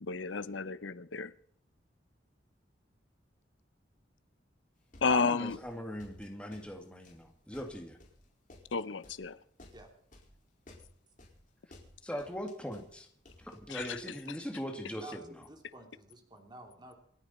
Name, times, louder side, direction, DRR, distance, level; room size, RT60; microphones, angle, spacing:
voice 1, 0.0-1.3 5.0-5.6 8.7-9.4 13.7-14.0, left 4 dB, 80° left, 0.7 m, -32 dB
sound 1, 4.9-14.3, left 1 dB, 45° left, 4.7 m, -57 dB
voice 2, 5.1-8.0 12.0-13.1 13.4-15.2, equal, 5° left, 2.2 m, -40 dB
voice 3, 14.8-16.9, right 1 dB, 25° right, 3.1 m, -51 dB
28.5 x 10.0 x 4.3 m
head